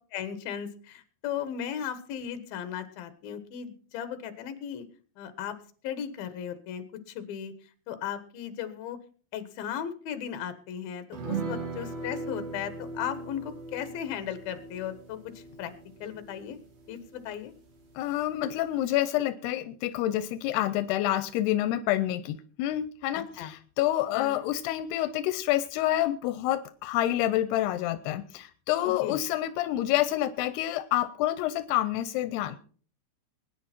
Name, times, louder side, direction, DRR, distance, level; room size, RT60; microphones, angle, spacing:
voice 1, 0.1-4.9 5.2-5.6 5.8-7.5 7.9-9.0 9.3-15.7 16.0-16.6 16.9-17.5 23.4-23.5 24.1-24.4 29.0-29.2, left 9 dB, 70° left, 11 dB, 3.1 m, -36 dB
sound 1, 11.1-17.9 18.2-18.3 18.7-18.8, right 4 dB, 65° right, 5.1 m, -39 dB
voice 2, 18.0-32.6, left 13 dB, 90° left, 12 dB, 2.8 m, -28 dB
21.5 x 10.0 x 4.4 m, 0.43 s
omnidirectional pair, 4.6 m